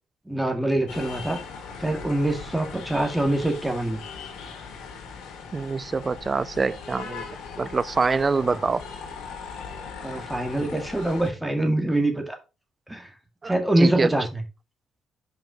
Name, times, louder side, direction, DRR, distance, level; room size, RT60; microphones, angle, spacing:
voice 1, 0.3-1.4 1.8-4.0 8.5-8.6 10.0-12.4 12.9-13.1 13.4-14.4, right 1 dB, 5° right, 2.4 m, -24 dB
sound 1, 0.9-11.3, left 5 dB, 85° left, 2.2 m, -39 dB
voice 2, 5.5-7.3 7.6-8.8 13.4-14.1, right 4 dB, 30° right, 0.4 m, -25 dB
5.9 x 5.2 x 4.9 m
cardioid pair, 90°, 0 cm